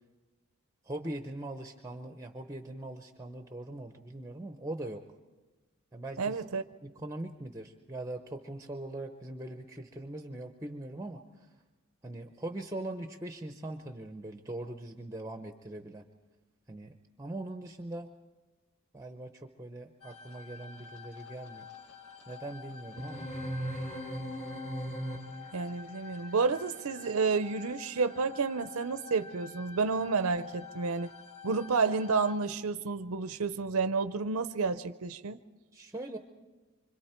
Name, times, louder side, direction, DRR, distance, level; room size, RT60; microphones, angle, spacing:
voice 1, 0.8-5.0 5.9-6.4 6.8-11.5 12.0-16.0 16.7-18.1 18.9-21.7 22.3-23.3 35.7-36.2, right 1 dB, 15° right, 6 dB, 0.7 m, -41 dB
voice 2, 6.2-6.6 25.5-31.1 31.4-35.4, right 4 dB, 80° right, 11 dB, 0.6 m, -30 dB
sound 1, 20.0-32.3, left 6 dB, 85° left, 1.9 m, -49 dB
sound 2, 23.0-25.6, equal, 35° left, 2.8 m, -37 dB
26.0 x 25.5 x 4.4 m, 1.2 s
head